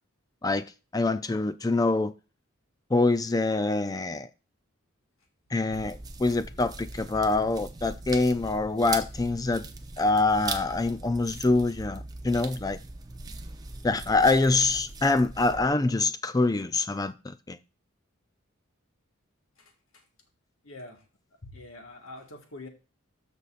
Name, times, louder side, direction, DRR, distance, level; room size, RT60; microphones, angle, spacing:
voice 1, 0.9-2.1 2.9-4.3 5.5-9.6 10.0-12.8 13.8-17.6, left 3 dB, 15° left, 0.4 m, -25 dB
sound 1, 5.7-15.7, right 3 dB, 20° right, 0.7 m, -40 dB
voice 2, 19.6-20.0 20.6-21.0 21.4-22.7, left 2 dB, 80° left, 1.7 m, -45 dB
13.0 x 5.4 x 2.5 m
head